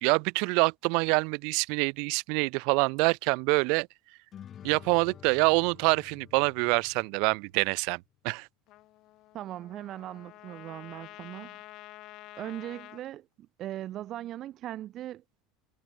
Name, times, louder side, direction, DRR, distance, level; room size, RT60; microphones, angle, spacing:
voice 1, 0.0-3.9 4.6-8.5, right 33 dB, 65° right, 1.3 m, -26 dB
sound 1, 4.3-7.9, left 9 dB, 35° left, 6.6 m, -50 dB
Trumpet, 8.7-13.0, left 17 dB, 55° left, 2.4 m, -49 dB
voice 2, 9.3-11.6 12.4-15.2, right 13 dB, 45° right, 5.3 m, -39 dB
supercardioid pair, 130°, 0 cm